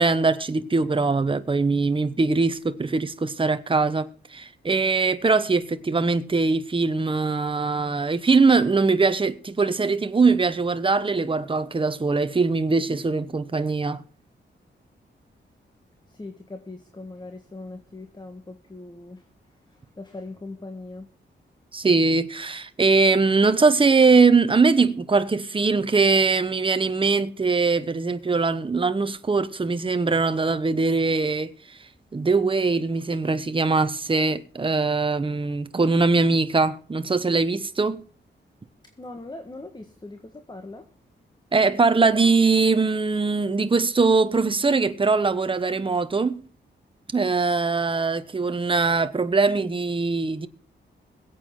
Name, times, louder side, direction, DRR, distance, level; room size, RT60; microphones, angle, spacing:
voice 1, 0.0-14.0 21.7-31.5 32.1-38.0 41.5-46.4 47.1-50.5, right 4 dB, 25° right, 1.1 m, -21 dB
voice 2, 16.1-19.3 19.6-21.1 38.8-40.9, left 2 dB, 20° left, 1.6 m, -40 dB
22.0 x 8.4 x 3.8 m
wide cardioid pair, 105°, 20 cm